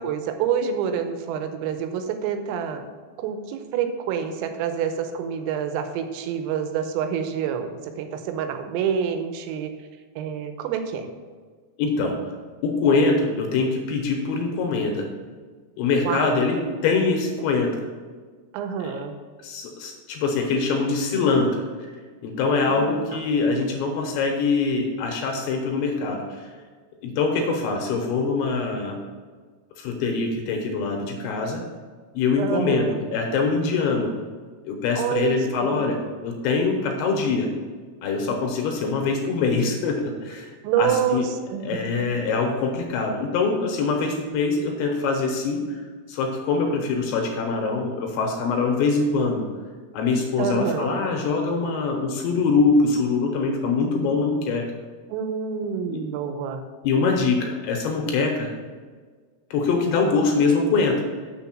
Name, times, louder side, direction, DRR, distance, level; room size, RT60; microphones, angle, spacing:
voice 1, 0.0-2.9 3.2-9.7 10.2-11.1 16.1-16.4 18.5-19.1 22.7-23.2 32.4-33.0 35.0-35.9 40.6-41.2 41.5-41.8 50.4-50.9 55.1-56.6, right 7 dB, 90° right, 7 dB, 3.4 m, -27 dB
voice 2, 11.8-12.2 12.6-15.1 15.8-16.6 16.8-17.8 18.8-19.0 19.4-21.6 22.2-26.5 27.0-29.0 29.8-31.6 32.1-34.1 34.6-37.5 38.0-40.5 40.8-41.2 41.6-45.8 46.1-49.4 49.9-54.6 55.9-56.0 56.8-58.5 59.5-61.0, left 4 dB, 75° left, 2 dB, 3.0 m, -23 dB
7.0 x 6.9 x 5.9 m, 1.5 s
omnidirectional pair, 5.9 m